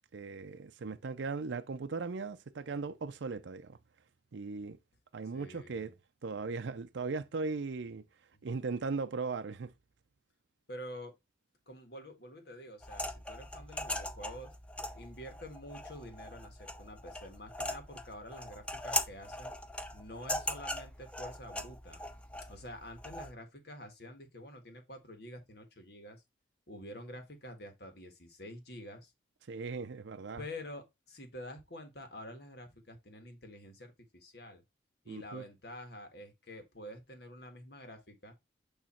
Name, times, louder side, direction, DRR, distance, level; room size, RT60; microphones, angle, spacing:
voice 1, 0.1-3.8 4.3-4.8 5.1-5.9 6.2-8.0 8.4-9.7 29.5-30.4 35.1-35.5, right 4 dB, 75° right, 0.5 m, -38 dB
voice 2, 5.3-5.9 8.4-8.6 10.7-11.1 11.7-14.5 14.9-19.6 19.9-22.0 22.5-26.2 26.7-29.1 30.4-34.6 35.0-38.3, left 1 dB, 55° left, 1.6 m, -48 dB
sound 1, 12.8-23.3, left 1 dB, 5° left, 0.6 m, -40 dB
8.7 x 3.1 x 4.3 m
head